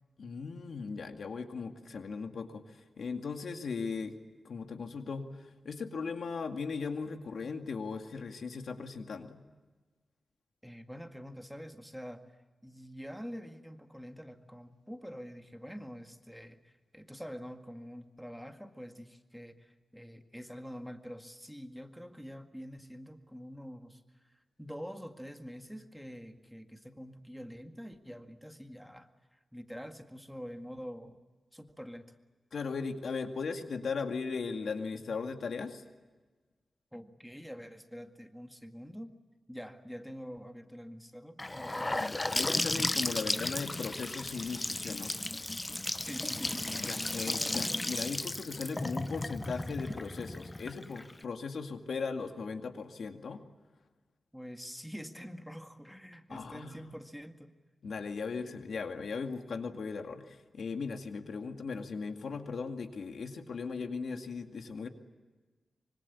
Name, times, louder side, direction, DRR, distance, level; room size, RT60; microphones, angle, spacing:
voice 1, 0.2-2.6 3.0-4.2 4.4-5.3 5.6-9.4 32.5-35.8 42.0-45.2 46.8-53.4 56.3-56.9 57.8-64.9, left 5 dB, 75° left, 6 dB, 2.2 m, -38 dB
voice 2, 10.6-12.2 12.6-31.2 31.5-32.1 36.9-39.1 39.5-42.1 46.0-46.7 54.3-57.5, equal, ahead, 6 dB, 1.9 m, -46 dB
Gurgling / Sink (filling or washing) / Bathtub (filling or washing), 41.4-51.2, left 2 dB, 20° left, 0.7 m, -34 dB
25.5 x 24.5 x 8.5 m, 1.3 s
wide cardioid pair, 85°, 0 cm